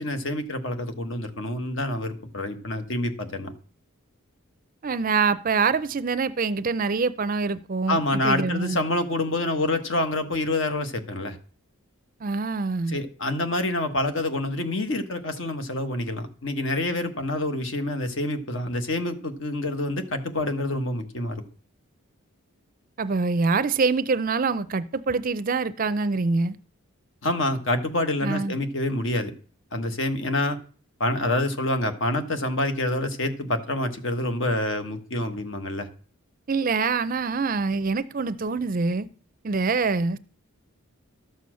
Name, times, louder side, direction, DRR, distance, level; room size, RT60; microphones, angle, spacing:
voice 1, 0.0-3.5 7.9-11.4 12.9-21.4 27.2-29.3 29.7-30.6 31.0-35.9, left 1 dB, 60° left, 1.4 m, -27 dB
voice 2, 4.8-8.8 12.2-13.0 23.0-26.6 28.2-28.6 36.5-39.1 39.4-40.2, right 4 dB, 40° right, 0.5 m, -25 dB
13.0 x 7.0 x 6.3 m
head